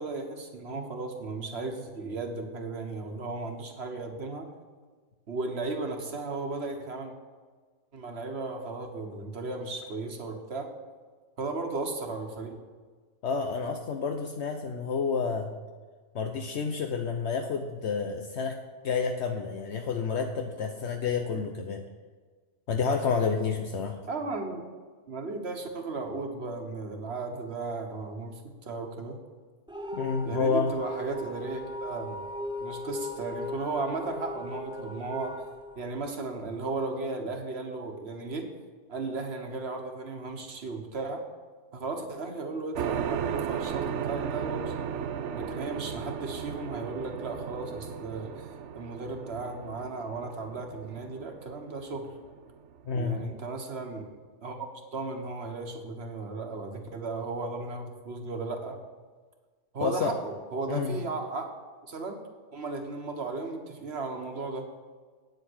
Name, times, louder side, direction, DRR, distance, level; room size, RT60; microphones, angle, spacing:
voice 1, 0.0-4.5 5.3-7.1 7.9-10.7 11.4-12.6 21.4-21.5 24.1-24.6 25.1-28.3 28.6-29.2 30.2-32.2 32.6-35.3 35.8-38.5 38.9-41.2 41.7-44.8 45.3-48.5 48.7-52.1 52.9-54.1 54.4-54.7 54.9-58.8 59.7-61.5 61.9-62.2 62.5-64.6, right 3 dB, 60° right, 4 dB, 1.6 m, -35 dB
voice 2, 13.2-15.5 16.1-18.6 18.8-21.8 22.7-24.0 29.9-30.7 52.9-53.2 59.8-60.1 60.7-61.0, left 5 dB, 70° left, 4 dB, 1.0 m, -29 dB
sound 1, 29.7-36.6, equal, 10° right, 0.3 m, -37 dB
sound 2, 42.8-52.9, right 8 dB, 75° right, 1.0 m, -35 dB
9.1 x 7.9 x 6.2 m, 1.5 s
omnidirectional pair, 1.2 m